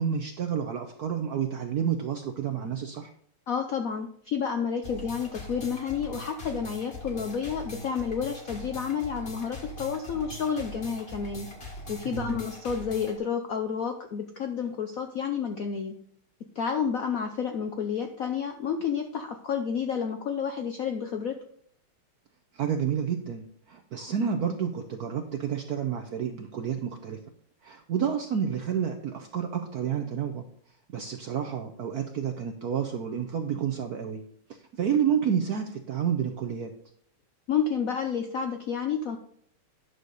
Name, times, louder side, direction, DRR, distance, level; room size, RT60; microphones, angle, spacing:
voice 1, 0.0-3.1 12.1-12.4 22.5-27.2 27.6-30.4 30.9-34.2 34.8-36.7, right 8 dB, 70° right, 5 dB, 0.9 m, -29 dB
voice 2, 3.5-11.5 11.9-15.9 16.6-21.4 37.5-39.2, left 6 dB, 70° left, 5 dB, 0.8 m, -30 dB
sound 1, 4.8-13.2, left 1 dB, 30° left, 1.8 m, -41 dB
9.9 x 6.5 x 4.0 m, 0.63 s
omnidirectional pair, 2.4 m